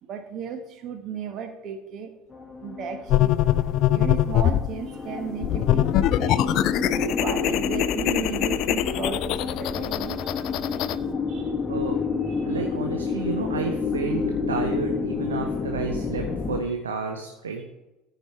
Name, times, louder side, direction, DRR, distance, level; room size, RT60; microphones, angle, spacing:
voice 1, 0.0-2.1 2.6-3.3 3.9-6.4 7.1-11.5 12.2-12.5, right 6 dB, 45° right, 7 dB, 1.5 m, -35 dB
sound 1, 2.3-16.6, left 5 dB, 20° left, 1.2 m, -29 dB
sound 2, 3.1-4.7 5.4-11.0, left 12 dB, 55° left, 0.4 m, -23 dB
voice 2, 12.5-14.2 14.5-17.7, right 5 dB, 85° right, 3 dB, 0.9 m, -31 dB
14.0 x 4.9 x 4.7 m, 1.0 s
hypercardioid pair, 70°, 0 cm